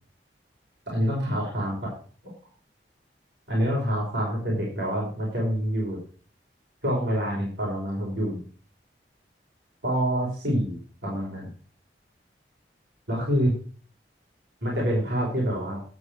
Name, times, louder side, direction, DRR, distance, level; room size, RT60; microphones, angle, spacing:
voice 1, 0.9-1.9 3.5-6.0 6.8-8.4 9.8-10.8 11.0-11.5 13.1-13.5 14.6-15.8, equal, 75° right, -4 dB, 4.8 m, -26 dB
11.5 x 8.0 x 6.5 m, 0.42 s
head